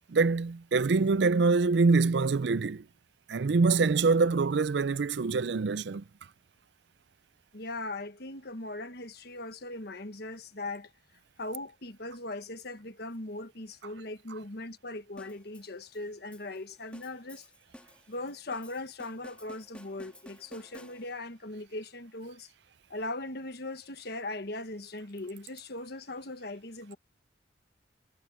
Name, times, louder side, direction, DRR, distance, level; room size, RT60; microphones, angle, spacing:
voice 1, 0.1-2.9 3.3-6.0, right 4 dB, 65° right, 0.5 m, -25 dB
voice 2, 7.5-10.9 11.4-17.5 18.1-22.5 22.9-27.0, left 2 dB, 60° left, 1.4 m, -39 dB
sound 1, 15.2-21.4, left 1 dB, 5° left, 1.7 m, -54 dB
head